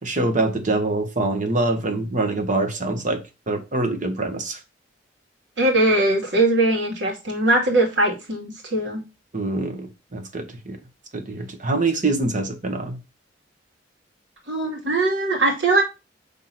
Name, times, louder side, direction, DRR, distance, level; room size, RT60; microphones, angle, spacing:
voice 1, 0.0-3.2 3.5-4.6 9.3-10.8 11.1-13.0, right 2 dB, 45° right, 1.4 m, -24 dB
voice 2, 5.6-9.0 14.5-15.8, right 2 dB, 75° right, 2.4 m, -20 dB
5.8 x 3.7 x 6.0 m
head